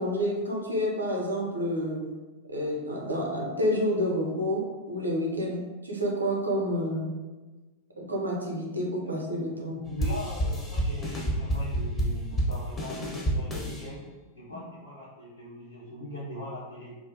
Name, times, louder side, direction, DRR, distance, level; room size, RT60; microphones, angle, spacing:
voice 1, 0.0-2.0 2.5-7.1 8.0-9.9, equal, 80° right, -1 dB, 0.4 m, -29 dB
voice 2, 9.6-14.0 14.3-16.9, left 1 dB, 75° left, -11 dB, 0.8 m, -40 dB
sound 1, 10.0-13.8, right 1 dB, 20° left, 0.5 m, -29 dB
2.4 x 2.1 x 2.7 m, 1.2 s
figure-of-eight pair, 90°, 0 cm